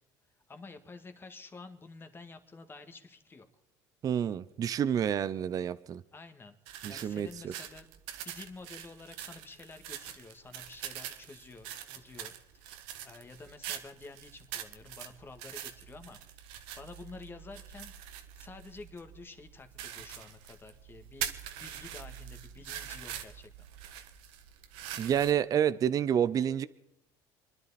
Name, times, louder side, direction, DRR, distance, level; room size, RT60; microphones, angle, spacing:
voice 1, 0.5-3.5 6.1-6.6 6.9-7.9 8.2-12.8 13.0-16.2 16.5-17.9 18.3-21.3 21.6-23.7, left 3 dB, 25° left, 1.8 m, -50 dB
voice 2, 4.0-6.0 6.8-7.5 25.0-26.7, right 9 dB, 40° right, 0.6 m, -29 dB
sound 1, 6.7-25.3, right 10 dB, 80° right, 1.4 m, -44 dB
27.5 x 11.0 x 4.2 m
supercardioid pair, 105°, 9 cm